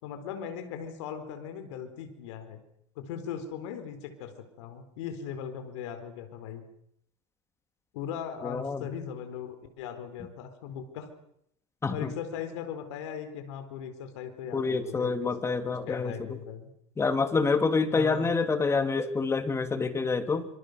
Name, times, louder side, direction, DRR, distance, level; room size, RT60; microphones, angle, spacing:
voice 1, 0.0-2.6 3.0-4.3 4.6-6.6 7.9-11.1 11.9-16.7 17.9-18.3, left 8 dB, 90° left, 8 dB, 4.3 m, -39 dB
voice 2, 8.4-8.8 11.8-12.1 14.5-16.3 17.0-20.5, left 4 dB, 20° left, 9 dB, 2.9 m, -27 dB
26.0 x 26.0 x 6.8 m, 0.74 s
supercardioid pair, 125°, 14 cm